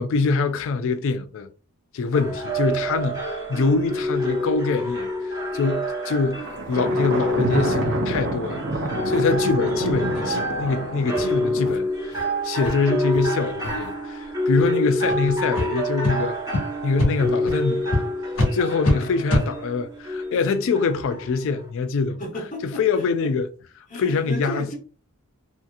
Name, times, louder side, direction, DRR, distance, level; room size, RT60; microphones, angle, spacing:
voice 1, 0.0-1.5 1.9-18.0 18.5-22.2 22.6-23.5 23.8-24.7, left 4 dB, 60° left, 0.3 m, -24 dB
sound 1, 2.1-21.7, left 1 dB, 15° right, 0.9 m, -27 dB
Thunder, 6.4-11.7, right 2 dB, 55° right, 0.6 m, -28 dB
sound 2, 9.1-9.2 9.7-9.8 10.1-10.3 10.6-10.7 11.1-11.2 11.6-11.8 12.1-12.2 12.6-12.7 13.1-13.3 13.6-13.9 14.5-14.7 15.1-15.2 15.5-15.7 16.0-16.1 16.5-16.6 17.0-17.1 17.5-17.6 17.9-18.0 18.3-18.5 18.8-18.9 19.3-19.4, left 2 dB, 85° left, 1.2 m, -24 dB
voice 2, 22.2-23.3 23.9-24.8, equal, 35° left, 1.0 m, -34 dB
2.7 x 2.5 x 2.3 m
head